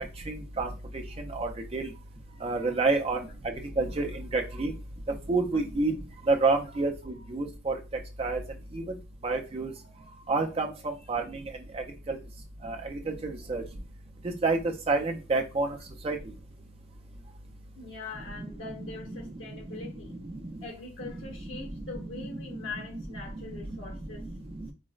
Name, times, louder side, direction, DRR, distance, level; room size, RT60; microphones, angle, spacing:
voice 1, 0.3-0.7 1.3-1.9 2.4-3.2 3.8-4.7 5.3-5.9 6.3-7.8 8.2-8.4 8.7-8.8 9.2-9.7 10.3-10.7 11.1-11.4 11.7-12.2 12.6-13.6 14.4-14.6 14.9-15.7 16.0-16.2 18.4-18.5 22.2-22.3, right 3 dB, 30° right, 3 dB, 0.4 m, -28 dB
voice 2, 17.7-20.2 20.6-24.2, left 3 dB, 80° left, 0 dB, 0.9 m, -42 dB
3.9 x 2.0 x 2.3 m, 0.30 s
head